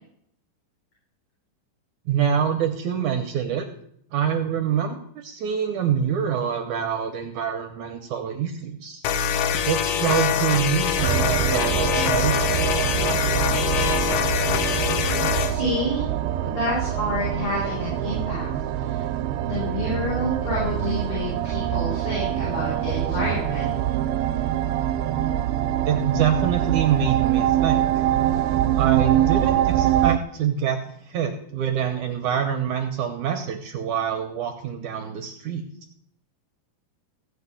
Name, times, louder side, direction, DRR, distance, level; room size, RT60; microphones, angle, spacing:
voice 1, 2.1-3.7 4.1-9.0 9.7-12.6 25.8-27.9 28.8-35.6, right 8 dB, 70° right, 6 dB, 2.1 m, -26 dB
sound 1, 9.0-15.6, left 8 dB, 85° left, 2.8 m, -24 dB
sound 2, 11.0-30.2, right 11 dB, 90° right, 2.5 m, -24 dB
voice 2, 15.4-16.0 16.4-18.5 18.8-19.0 19.5-23.7, left 1 dB, 45° left, -8 dB, 7.3 m, -28 dB
16.0 x 5.6 x 8.3 m, 0.69 s
omnidirectional pair, 4.3 m